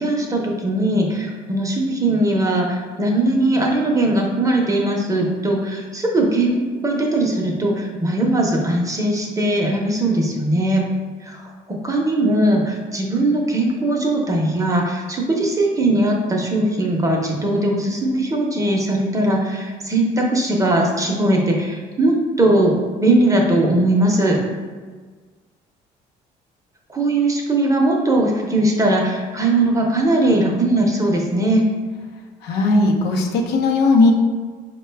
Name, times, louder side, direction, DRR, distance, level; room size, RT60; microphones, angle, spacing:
voice 1, 0.0-10.8 11.2-22.7 23.0-24.4 26.9-31.6, right 1 dB, 20° right, 0 dB, 0.6 m, -19 dB
voice 2, 32.4-34.1, left 3 dB, 80° left, 1 dB, 0.6 m, -17 dB
4.6 x 2.2 x 3.3 m, 1.5 s
cardioid pair, 110°, 17 cm